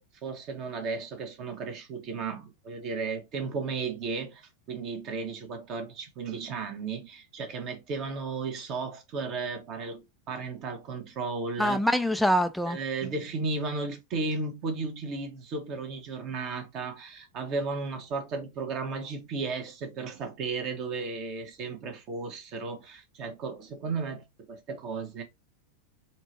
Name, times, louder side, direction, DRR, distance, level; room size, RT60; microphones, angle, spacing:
voice 1, 0.0-11.8 12.7-25.2, right 4 dB, 40° right, 1.3 m, -34 dB
voice 2, 11.6-12.8, equal, ahead, 0.4 m, -24 dB
4.4 x 2.9 x 2.8 m
figure-of-eight pair, 90°, 0 cm